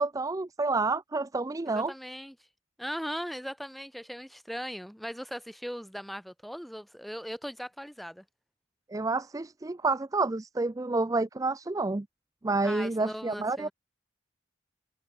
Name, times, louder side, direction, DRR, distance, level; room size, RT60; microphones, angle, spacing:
voice 1, 0.0-1.9 8.9-12.1 12.4-13.7, right 3 dB, 20° right, 0.4 m, -29 dB
voice 2, 1.7-2.4 2.8-8.2 12.6-13.7, equal, ahead, 5.8 m, -39 dB
head